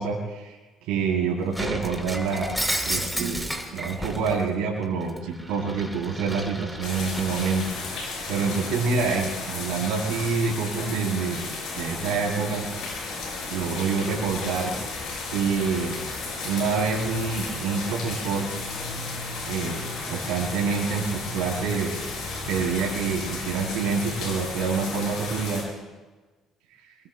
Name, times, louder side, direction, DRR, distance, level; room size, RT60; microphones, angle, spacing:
voice 1, 0.0-2.6 2.8-11.4 11.7-12.7 13.5-14.7 15.3-16.0 16.4-18.5 19.5-21.9 22.4-25.6, right 5 dB, 75° right, -4 dB, 3.3 m, -27 dB
Shatter, 1.5-4.4 4.8-8.0, right 1 dB, ahead, 3.2 m, -32 dB
sound 1, 6.8-25.6, left 3 dB, 70° left, 6.8 m, -34 dB
27.0 x 22.5 x 2.2 m, 1.2 s
hypercardioid pair, 55°, 0 cm